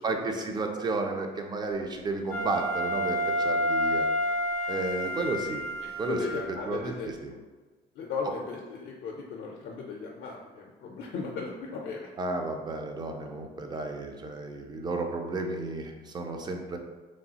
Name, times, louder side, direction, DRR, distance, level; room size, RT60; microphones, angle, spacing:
voice 1, 0.0-4.1 4.7-5.6 6.0-7.3 8.2-8.4 12.2-16.8, right 3 dB, 25° right, 3 dB, 0.4 m, -32 dB
Wind instrument woodwind instrument, 2.3-6.6, equal, 75° right, 1.3 m, -29 dB
voice 2, 6.1-7.1 8.0-12.0, left 4 dB, 65° left, -1 dB, 0.4 m, -36 dB
3.0 x 2.3 x 2.7 m, 1.3 s
cardioid pair, 110°, 17 cm